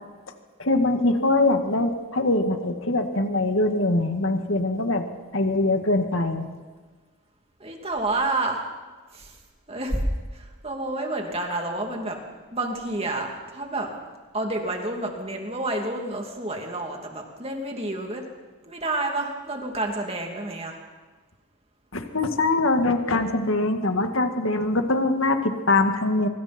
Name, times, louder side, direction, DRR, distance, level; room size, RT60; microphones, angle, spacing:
voice 1, 0.6-5.0 5.3-6.5 21.9-26.3, left 2 dB, 65° left, 5 dB, 2.0 m, -23 dB
voice 2, 7.6-8.6 9.1-9.4 9.7-10.0 10.3-12.2 12.5-13.9 14.3-18.2 18.6-20.8, right 2 dB, 30° right, 1 dB, 2.9 m, -29 dB
24.5 x 24.0 x 4.5 m, 1.3 s
head